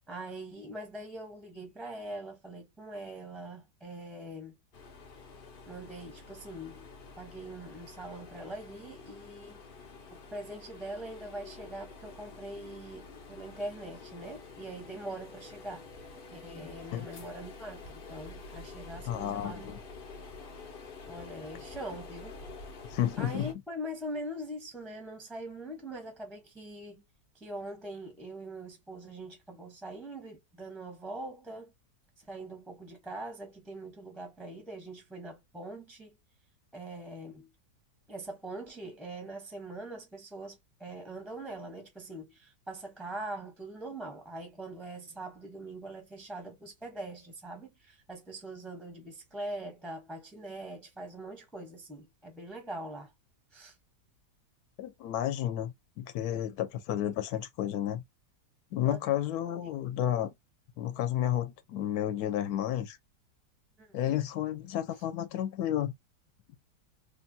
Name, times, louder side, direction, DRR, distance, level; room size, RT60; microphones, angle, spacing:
voice 1, 0.1-4.5 5.7-6.9 7.2-9.6 10.1-15.9 16.3-19.8 21.1-22.4 23.2-27.0 27.3-31.7 32.2-36.2 36.7-37.5 38.1-53.1 53.5-53.7 58.8-59.0 63.8-64.0, right 1 dB, ahead, 0.6 m, -42 dB
sound 1, 4.7-23.5, left 4 dB, 55° left, 0.6 m, -48 dB
voice 2, 19.1-19.7 22.9-23.5 54.8-58.0 58.7-60.3 60.8-63.0 63.9-65.9, left 11 dB, 70° left, 1.1 m, -31 dB
3.2 x 2.2 x 2.6 m
omnidirectional pair, 1.8 m